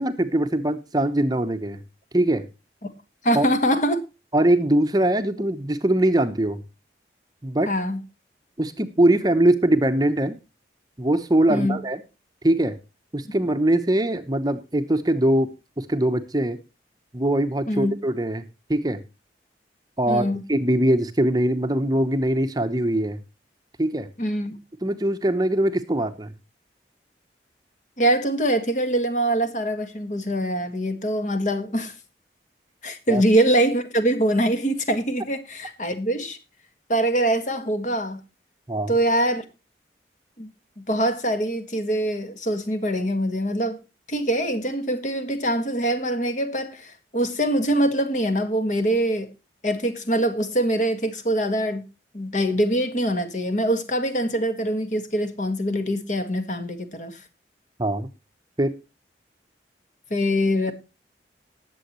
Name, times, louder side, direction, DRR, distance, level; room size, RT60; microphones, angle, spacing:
voice 1, 0.0-1.8 2.1-2.5 3.3-3.5 4.3-6.6 7.4-7.7 8.6-10.4 11.0-12.0 12.4-12.8 13.1-15.5 15.8-16.6 17.1-18.4 18.7-19.0 20.0-23.2 23.8-24.1 24.8-26.3 33.1-33.2 38.7-38.9 57.8-58.1 58.6-58.7, right 1 dB, 20° right, 0.8 m, -22 dB
voice 2, 3.2-4.0 7.7-8.0 11.5-11.8 17.7-18.0 20.1-20.4 24.2-24.5 28.0-31.9 32.8-36.4 36.9-38.2 38.9-39.4 40.4-40.5 40.8-43.8 44.1-49.3 49.6-51.9 52.1-57.2 60.1-60.7, right 1 dB, 45° left, 1.7 m, -23 dB
19.5 x 7.7 x 3.0 m
head